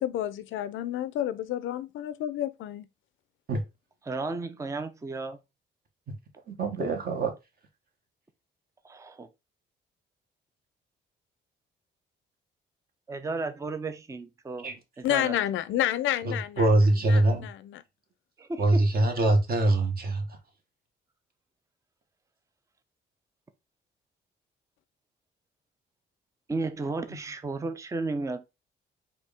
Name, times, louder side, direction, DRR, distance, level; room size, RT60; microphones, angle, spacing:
voice 1, 0.0-2.9 15.0-16.7 17.1-17.8, left 12 dB, 80° left, 0.5 m, -30 dB
voice 2, 4.0-5.4 8.8-9.3 13.1-14.7 15.0-15.4 18.4-18.9 26.5-28.5, right 3 dB, 15° right, 0.5 m, -33 dB
voice 3, 6.5-7.3 14.6-14.7 16.2-17.5 18.6-20.2, right 2 dB, 50° right, 1.5 m, -23 dB
4.4 x 2.7 x 3.4 m
cardioid pair, 90°, 20 cm